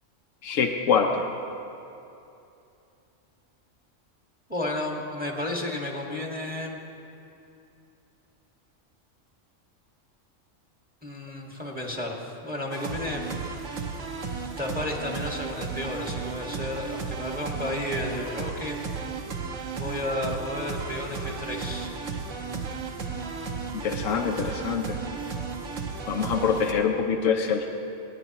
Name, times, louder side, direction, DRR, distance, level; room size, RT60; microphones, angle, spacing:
voice 1, 0.4-1.3 23.8-25.0 26.1-27.7, left 6 dB, 85° left, 3 dB, 1.1 m, -25 dB
voice 2, 4.5-6.8 11.0-12.2 12.4-13.2 14.6-18.7 19.8-21.9, left 1 dB, 5° right, -1 dB, 1.5 m, -32 dB
sound 1, 12.7-26.7, right 5 dB, 75° right, 1.4 m, -34 dB
28.5 x 10.0 x 3.0 m, 2.7 s
omnidirectional pair, 1.3 m